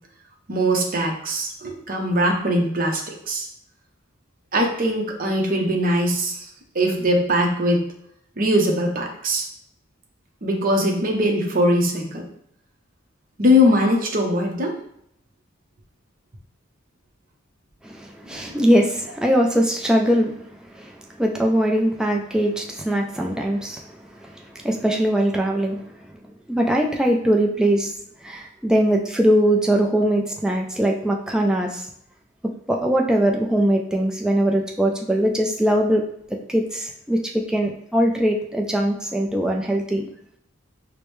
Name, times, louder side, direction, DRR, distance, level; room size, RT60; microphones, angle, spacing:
voice 1, 0.5-3.5 4.5-6.5 6.7-7.8 8.4-9.5 10.4-12.2 13.4-14.7 18.3-18.6, equal, 45° right, 1 dB, 0.7 m, -21 dB
voice 2, 17.8-20.3 20.7-23.8 24.2-25.8 26.5-27.9 28.2-31.9 32.7-36.0 36.3-40.1, right 1 dB, 5° right, 0 dB, 0.4 m, -21 dB
4.9 x 2.1 x 3.1 m, 0.69 s
head